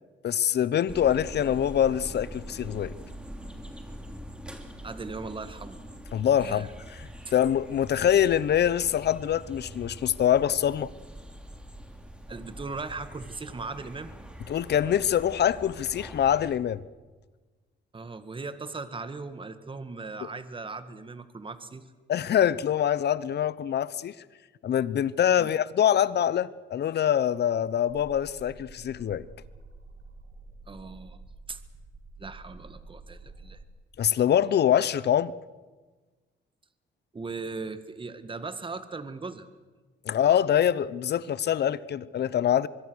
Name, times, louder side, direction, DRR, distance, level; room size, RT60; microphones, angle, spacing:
voice 1, 0.2-2.9 6.1-10.9 14.5-16.8 22.1-24.1 24.6-29.3 34.0-35.3 40.0-42.7, left 10 dB, 55° left, 0.8 m, -24 dB
sound 1, 0.9-16.6, equal, 5° right, 3.1 m, -44 dB
voice 2, 4.8-5.8 6.4-6.7 12.3-14.1 17.9-21.9 25.4-25.5 30.7-31.2 31.5-31.6 32.2-33.6 37.1-39.5, right 4 dB, 25° right, 1.7 m, -38 dB
sound 2, 27.9-33.7, right 3 dB, 55° right, 2.6 m, -48 dB
25.0 x 21.5 x 6.3 m
cardioid pair, 90°, 20 cm